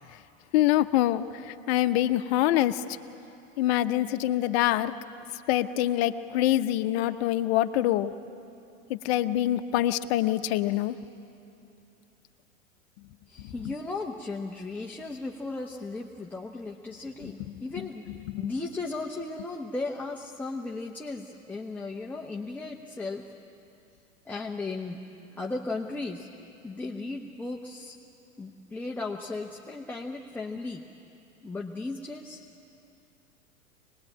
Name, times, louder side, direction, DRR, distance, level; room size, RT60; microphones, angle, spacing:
voice 1, 0.5-2.8 3.6-4.9 5.5-8.1 8.9-10.9 13.4-13.7 17.2-17.3 18.3-18.5, left 13 dB, 45° left, 9 dB, 1.0 m, -25 dB
voice 2, 13.3-18.1 18.4-23.3 24.2-25.0 25.3-26.3 26.6-28.0 28.4-30.8 31.4-32.4, left 3 dB, 5° left, 0 dB, 1.0 m, -36 dB
24.5 x 20.0 x 8.8 m, 2.7 s
hypercardioid pair, 105°, 43 cm